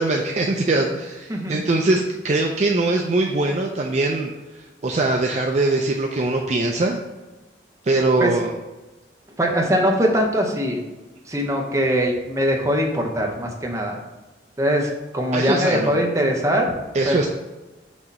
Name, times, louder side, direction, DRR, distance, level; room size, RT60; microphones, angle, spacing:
voice 1, 0.0-7.0 7.8-8.5 15.3-15.9 16.9-17.3, right 2 dB, 40° right, 1 dB, 0.4 m, -22 dB
voice 2, 9.4-10.8 11.3-14.0 14.6-16.7 17.1-17.3, equal, 15° right, 0 dB, 0.8 m, -21 dB
6.2 x 2.9 x 5.3 m, 1.1 s
head